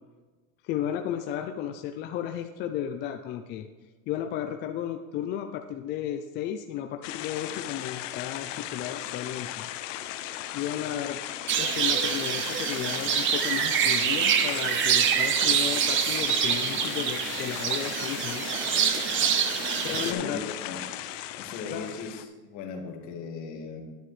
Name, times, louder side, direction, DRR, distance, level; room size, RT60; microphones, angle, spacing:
voice 1, 0.6-3.7 4.1-9.7 10.5-11.2 11.6-18.5 19.8-20.5 21.7-22.0, left 10 dB, 30° left, 6 dB, 0.4 m, -34 dB
sound 1, 7.0-22.3, left 13 dB, 70° left, 0.7 m, -37 dB
sound 2, 11.5-20.1, right 8 dB, 30° right, 0.7 m, -26 dB
voice 2, 19.9-20.8 21.4-23.8, left 4 dB, 50° left, 2 dB, 1.9 m, -38 dB
10.5 x 9.8 x 3.2 m, 1.3 s
supercardioid pair, 140°, 39 cm